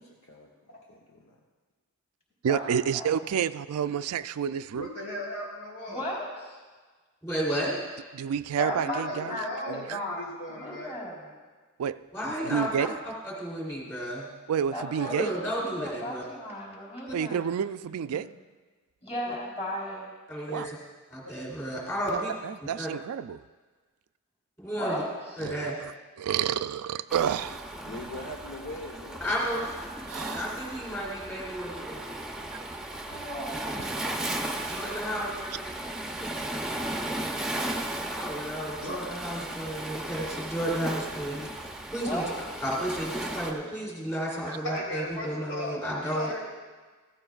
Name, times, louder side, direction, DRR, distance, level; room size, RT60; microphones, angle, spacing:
voice 1, 0.0-1.4 27.8-29.7, left 1 dB, 65° left, 1.0 m, -43 dB
voice 2, 2.4-4.9 8.1-10.0 11.8-12.0 12.4-12.9 14.5-15.3 17.1-18.3 20.5-20.7 22.4-23.4 25.4-25.7 26.2-27.6 30.1-30.5 34.5-34.7, right 8 dB, 75° right, 0.3 m, -29 dB
voice 3, 4.7-6.0 8.6-10.9 38.8-39.1 44.4-46.4, left 1 dB, 85° left, 3.9 m, -37 dB
voice 4, 5.9-6.6 8.6-9.0 9.3-11.3 14.7-17.4 19.0-20.1 24.7-25.1 25.4-25.5 33.0-34.3 42.0-42.4, left 1 dB, 30° left, 3.9 m, -36 dB
voice 5, 7.2-7.8 12.1-14.3 15.0-16.2 17.1-17.2 20.3-20.8 21.1-22.3 22.8-22.9 24.6-25.0 25.4-25.8 29.2-29.7 30.1-31.9 34.7-35.6 36.2-36.3 38.0-42.2 42.6-46.3, equal, 15° left, 3.0 m, -32 dB
Waves surf, 27.1-43.5, right 1 dB, 5° right, 0.7 m, -36 dB
15.5 x 14.0 x 2.4 m
head